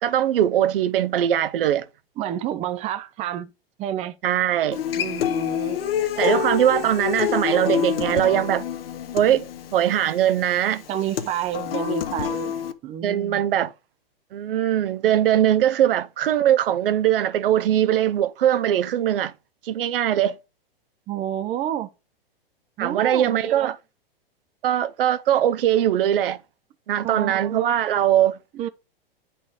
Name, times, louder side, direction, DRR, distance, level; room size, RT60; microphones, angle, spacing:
voice 1, 0.0-1.9 4.2-4.8 6.2-8.7 9.1-10.8 13.0-13.7 14.3-19.3 19.6-20.4 22.8-23.8 24.6-26.4 26.9-28.4, right 11 dB, 65° right, 0.7 m, -21 dB
voice 2, 2.2-3.5 3.8-4.1 4.9-6.6 10.0-10.1 10.9-12.6 12.8-13.4 21.1-21.9 22.8-23.7 27.0-27.7 28.5-28.7, right 11 dB, 20° right, 0.5 m, -30 dB
Human voice / Acoustic guitar, 4.7-12.7, left 9 dB, 70° left, 1.0 m, -27 dB
9.4 x 4.3 x 4.8 m
hypercardioid pair, 115°, 30 cm